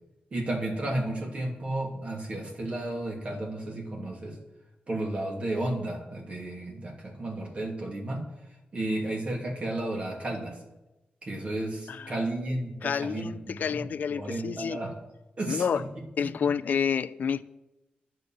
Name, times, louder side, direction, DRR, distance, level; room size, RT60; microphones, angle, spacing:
voice 1, 0.3-4.4 4.9-8.2 8.7-10.6 11.2-14.9 15.4-15.8 16.2-16.3, right 1 dB, 40° right, 2.7 m, -33 dB
voice 2, 11.9-12.2 12.8-14.8 15.5-15.8 16.2-17.4, left 7 dB, 65° left, 0.4 m, -29 dB
10.5 x 6.9 x 7.8 m
wide cardioid pair, 135°, 3 cm